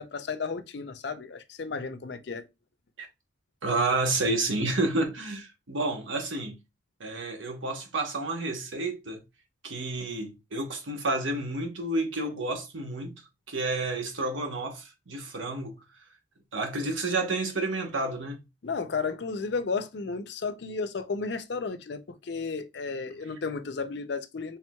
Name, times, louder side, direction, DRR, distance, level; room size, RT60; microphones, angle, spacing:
voice 1, 0.0-2.5 18.6-24.6, left 4 dB, 55° left, 0.5 m, -33 dB
voice 2, 3.6-6.6 7.0-9.2 9.6-13.1 13.5-15.7 16.5-18.4, right 2 dB, 75° right, 1.0 m, -30 dB
4.5 x 3.4 x 2.2 m
head